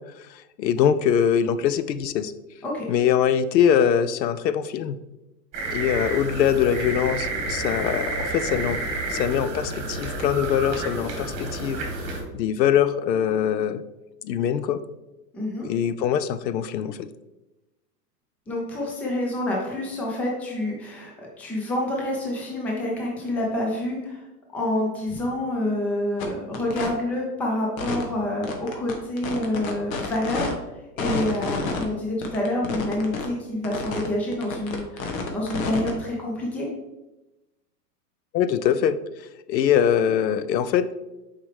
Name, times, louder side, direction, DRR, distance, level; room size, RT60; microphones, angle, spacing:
voice 1, 0.3-2.3 2.9-5.0 5.7-8.8 9.1-11.8 12.3-13.8 14.2-14.8 15.6-17.1 38.3-39.0 39.5-41.0, left 9 dB, 85° left, 13 dB, 0.6 m, -23 dB
sound 1, 5.5-12.2, right 2 dB, 30° right, 1.8 m, -30 dB
voice 2, 15.3-15.7 18.5-24.3 24.5-30.6 31.0-36.7, left 1 dB, 5° left, -2 dB, 0.4 m, -27 dB
sound 2, 26.2-26.3 26.5-26.9 27.8-28.0 28.4-30.5 31.0-31.8 32.2-33.3 33.6-34.1 34.3-35.9, left 4 dB, 55° left, 1.3 m, -29 dB
6.2 x 4.9 x 3.3 m, 1.0 s
hypercardioid pair, 130°, 49 cm